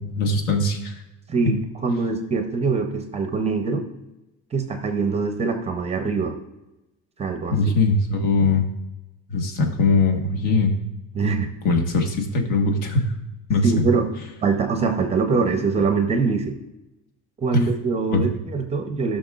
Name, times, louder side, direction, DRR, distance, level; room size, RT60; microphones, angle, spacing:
voice 1, 0.0-0.9 1.5-1.6 7.5-8.6 9.3-10.7 11.6-13.1 13.5-13.6 17.5-17.7 18.1-18.2, left 3 dB, 70° left, 3 dB, 1.5 m, -21 dB
voice 2, 1.3-3.8 4.5-6.3 7.2-7.6 11.1-11.5 13.6-14.1 14.4-16.6 17.4-19.2, right 4 dB, 20° right, 5 dB, 0.6 m, -23 dB
16.5 x 6.2 x 2.4 m, 0.99 s
cardioid pair, 180°, 32 cm